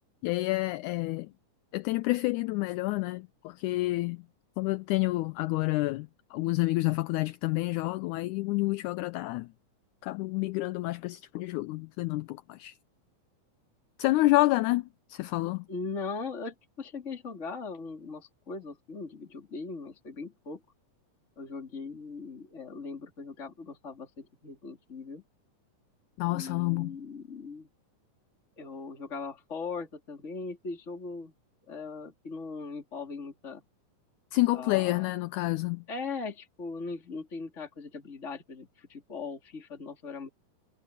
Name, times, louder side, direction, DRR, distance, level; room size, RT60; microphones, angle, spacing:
voice 1, 0.2-1.3 1.7-4.2 4.6-9.5 10.0-12.8 14.0-15.7 26.2-27.0 34.3-35.8, left 20 dB, 80° left, 1.9 m, -29 dB
voice 2, 15.7-20.6 21.4-25.2 26.3-27.7 28.6-31.3 31.7-33.6 34.5-35.1 35.9-40.3, left 4 dB, 20° left, 3.3 m, -39 dB
omnidirectional pair, 3.7 m